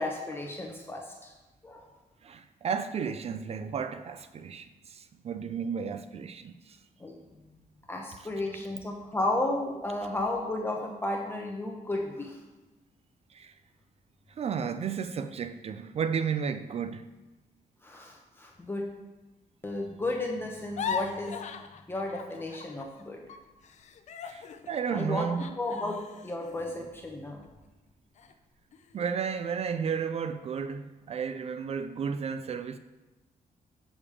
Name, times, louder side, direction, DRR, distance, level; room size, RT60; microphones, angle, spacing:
voice 1, 0.0-1.3 1.6-1.8 7.0-7.1 7.9-12.4 17.8-18.8 19.6-21.4 21.9-23.2 24.9-25.3 25.6-26.0 26.2-27.4, left 2 dB, 15° left, 0.8 m, -33 dB
voice 2, 2.2-6.8 13.3-13.5 14.4-17.0 24.2-25.5 28.9-32.8, right 6 dB, 45° right, 0.4 m, -33 dB
sound 1, 20.5-23.0 23.3-27.7 28.2-28.3 28.7-29.2, left 6 dB, 55° left, 0.5 m, -40 dB
7.1 x 5.0 x 4.9 m
wide cardioid pair, 145°, 15 cm